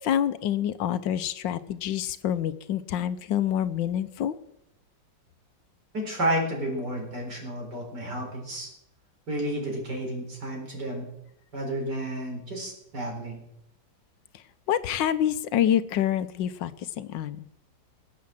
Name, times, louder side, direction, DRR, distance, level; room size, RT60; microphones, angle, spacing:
voice 1, 0.0-4.4 14.7-16.7 17.0-17.5, left 10 dB, 80° left, 13 dB, 1.4 m, -27 dB
voice 2, 5.9-8.7 9.3-11.1 11.5-13.4, right 1 dB, 65° right, 0 dB, 4.9 m, -31 dB
18.0 x 8.5 x 7.5 m, 0.83 s
omnidirectional pair, 2.0 m